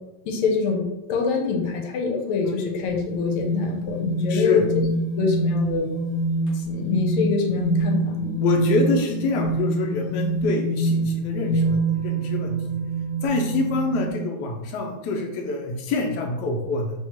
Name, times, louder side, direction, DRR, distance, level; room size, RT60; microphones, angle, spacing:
voice 1, 0.2-4.6 5.2-5.9 6.5-8.3, left 4 dB, 85° left, 1 dB, 1.5 m, -25 dB
sound 1, 2.9-14.1, right 2 dB, 45° left, 1.1 m, -25 dB
voice 2, 4.3-4.6 8.4-12.8 13.2-16.9, left 3 dB, 70° left, 1 dB, 1.1 m, -26 dB
3.5 x 2.9 x 2.9 m, 0.95 s
omnidirectional pair, 2.3 m